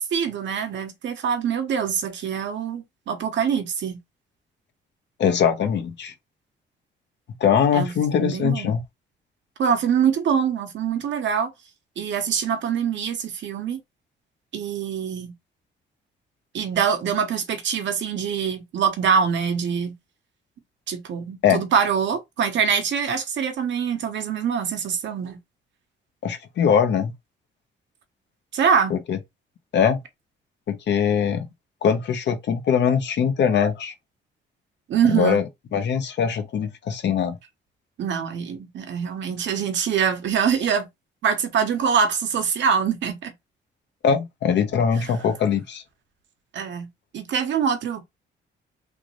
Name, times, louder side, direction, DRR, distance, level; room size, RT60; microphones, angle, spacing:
voice 1, 0.0-4.0 7.7-7.9 8.2-8.7 9.6-11.5 12.0-13.8 14.5-15.3 16.5-19.9 20.9-25.4 28.5-28.9 34.9-35.4 38.0-40.9 41.2-43.3 46.5-46.9 47.1-48.0, right 7 dB, 65° right, 1.0 m, -24 dB
voice 2, 5.2-6.1 7.4-8.8 21.4-21.6 26.2-27.1 28.9-29.2 29.7-30.0 30.7-31.5 31.8-33.9 35.0-35.4 35.7-37.4 44.0-45.8, left 7 dB, 65° left, 0.9 m, -21 dB
3.5 x 2.6 x 3.1 m
cardioid pair, 90°, 20 cm